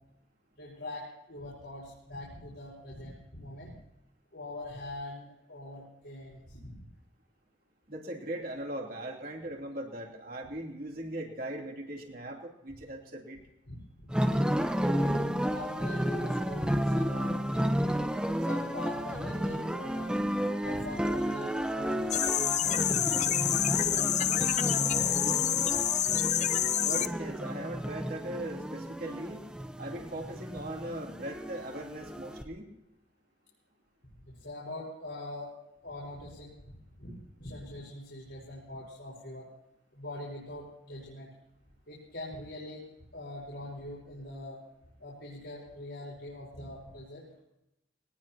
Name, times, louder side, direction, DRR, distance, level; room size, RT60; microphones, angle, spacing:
voice 1, 0.6-3.8 4.3-6.8 13.7-14.1 15.4-17.4 18.4-20.2 20.6-22.9 23.2-23.9 24.2-25.9 34.3-35.5 35.8-39.5 39.9-41.3 41.9-42.8 43.1-44.6 45.0-47.2, left 1 dB, 65° left, -5 dB, 5.2 m, -43 dB
voice 2, 7.9-13.4 26.8-29.5 29.8-32.7, right 1 dB, 50° right, 0 dB, 3.2 m, -39 dB
sound 1, 14.1-32.4, equal, 5° right, 0.9 m, -32 dB
sound 2, 22.1-27.1, left 11 dB, 40° left, 0.6 m, -28 dB
22.0 x 19.0 x 2.9 m, 0.88 s
head